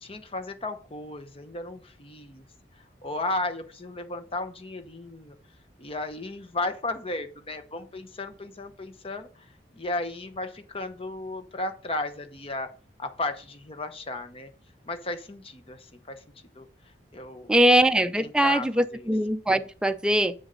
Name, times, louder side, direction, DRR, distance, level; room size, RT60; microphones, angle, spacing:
voice 1, 0.0-2.4 3.0-5.3 5.8-9.5 9.7-12.7 13.0-14.5 14.9-16.2 16.5-16.7 17.1-19.1, left 2 dB, 30° left, 0.9 m, -34 dB
voice 2, 17.5-20.3, right 1 dB, 5° right, 0.5 m, -22 dB
8.0 x 7.1 x 3.9 m
head